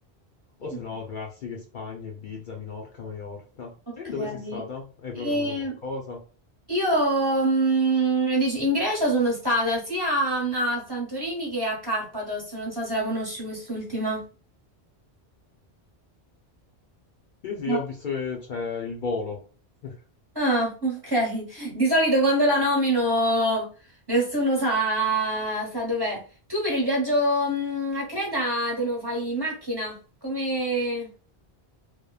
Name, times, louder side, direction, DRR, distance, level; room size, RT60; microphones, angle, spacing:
voice 1, 0.6-6.2 17.4-19.4 19.8-19.9, left 4 dB, 55° left, 0 dB, 0.7 m, -34 dB
voice 2, 3.9-4.6 5.1-5.8 6.7-14.3 17.7-17.8 20.3-23.7 24.1-26.2 26.5-31.1, right 1 dB, 25° right, -3 dB, 1.0 m, -25 dB
3.0 x 2.1 x 2.2 m, 0.36 s
omnidirectional pair, 1.1 m